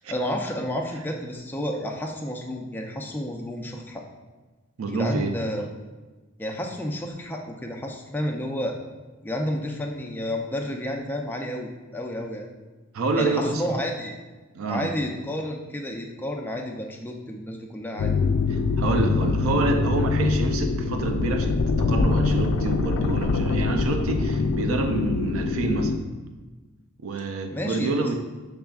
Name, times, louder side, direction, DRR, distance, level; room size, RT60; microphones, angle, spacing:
voice 1, 0.1-4.0 4.9-5.7 6.4-8.8 9.2-12.5 13.2-14.2 14.7-18.1 27.5-28.1, left 1 dB, 10° left, 1 dB, 0.4 m, -31 dB
voice 2, 4.8-5.4 12.9-13.6 14.5-14.9 18.8-21.6 21.9-26.0 27.0-28.1, right 3 dB, 80° right, 5 dB, 0.5 m, -27 dB
sound 1, 18.0-26.0, left 4 dB, 85° left, 0.4 m, -24 dB
6.6 x 3.3 x 2.3 m, 1.3 s
head